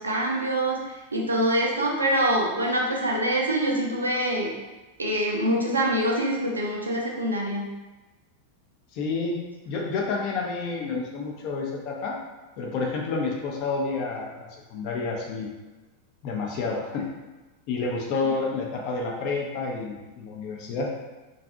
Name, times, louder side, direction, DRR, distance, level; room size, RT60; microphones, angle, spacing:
voice 1, 0.0-4.5 5.0-7.7 18.2-18.3, right 1 dB, 75° right, -1 dB, 0.4 m, -25 dB
voice 2, 8.9-9.4 9.7-12.2 12.6-15.5 16.2-17.1 17.7-20.9, left 4 dB, 45° left, -1 dB, 0.5 m, -29 dB
2.6 x 2.3 x 2.4 m, 1.1 s
figure-of-eight pair, 90°, 0 cm